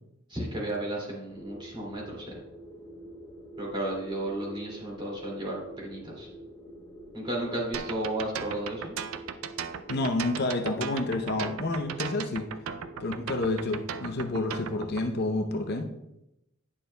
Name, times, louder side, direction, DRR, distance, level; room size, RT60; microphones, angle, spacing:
voice 1, 0.3-2.4 3.6-6.3 7.1-9.0, right 1 dB, 25° right, -3 dB, 2.4 m, -33 dB
sound 1, 1.3-15.1, right 1 dB, 15° left, 0.9 m, -47 dB
sound 2, 7.7-15.0, right 7 dB, 75° right, 0.4 m, -37 dB
voice 2, 9.9-12.4 13.0-15.9, left 2 dB, 50° left, 4 dB, 0.6 m, -29 dB
9.9 x 6.6 x 2.2 m, 0.86 s
head